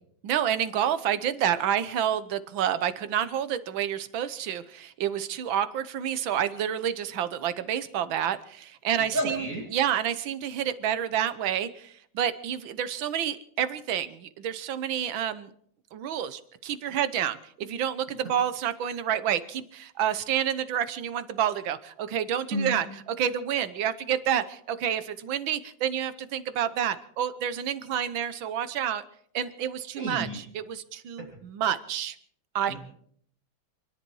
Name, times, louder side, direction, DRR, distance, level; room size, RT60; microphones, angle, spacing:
voice 1, 0.2-15.5 15.9-22.9 23.2-29.0 29.3-32.1 32.5-32.7, right 9 dB, 80° right, 12 dB, 1.7 m, -29 dB
voice 2, 9.1-9.7 22.5-22.8 30.0-30.4 32.7-32.8, right 1 dB, 40° right, 1 dB, 3.2 m, -30 dB
27.5 x 10.5 x 4.7 m, 0.63 s
omnidirectional pair, 2.1 m